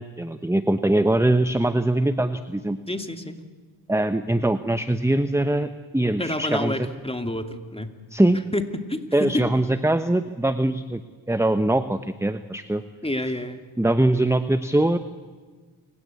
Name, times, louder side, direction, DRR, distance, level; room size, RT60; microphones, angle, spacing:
voice 1, 0.0-2.8 3.9-6.9 8.1-8.4 9.1-11.0 11.3-12.8 13.8-15.0, right 1 dB, 5° right, 11 dB, 1.0 m, -22 dB
voice 2, 2.9-3.4 6.2-7.9 8.5-9.4 13.0-13.6, left 1 dB, 10° left, 7 dB, 2.6 m, -28 dB
28.0 x 17.0 x 8.4 m, 1.5 s
cardioid pair, 55°, 48 cm